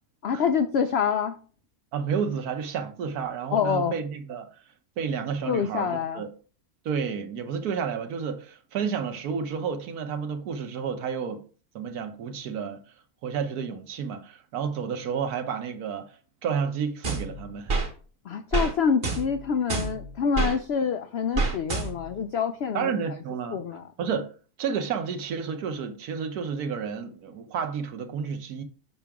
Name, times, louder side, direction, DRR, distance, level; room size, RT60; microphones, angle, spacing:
voice 1, 0.2-1.4 3.5-4.0 5.5-6.2 18.3-22.9 23.5-23.8, left 6 dB, 85° left, 0.5 m, -26 dB
voice 2, 1.9-4.5 5.0-6.3 6.8-11.4 11.7-12.8 13.2-16.1 16.4-17.8 22.7-23.6 24.0-24.3 24.6-28.6, right 6 dB, 75° right, 1.4 m, -31 dB
sound 1, 17.0-17.9 18.5-18.7 19.0-20.6 21.4-22.2, right 3 dB, 40° right, 1.2 m, -28 dB
6.5 x 5.9 x 3.5 m
omnidirectional pair, 1.7 m